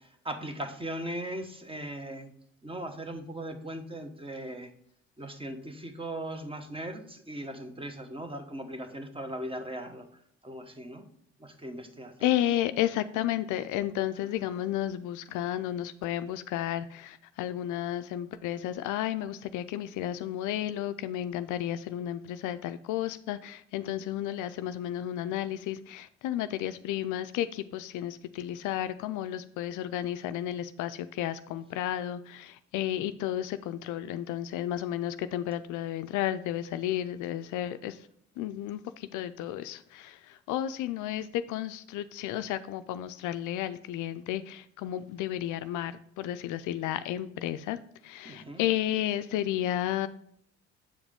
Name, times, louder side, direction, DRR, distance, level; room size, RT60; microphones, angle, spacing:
voice 1, 0.0-2.3 2.6-4.7 5.2-11.0 11.4-12.3 14.2-14.4 48.2-48.6, right 1 dB, 15° right, 6 dB, 1.1 m, -39 dB
voice 2, 12.2-38.0 38.4-47.8 48.0-50.1, left 12 dB, 65° left, 12 dB, 0.4 m, -32 dB
7.4 x 4.9 x 3.5 m, 0.68 s
hypercardioid pair, 55°, 33 cm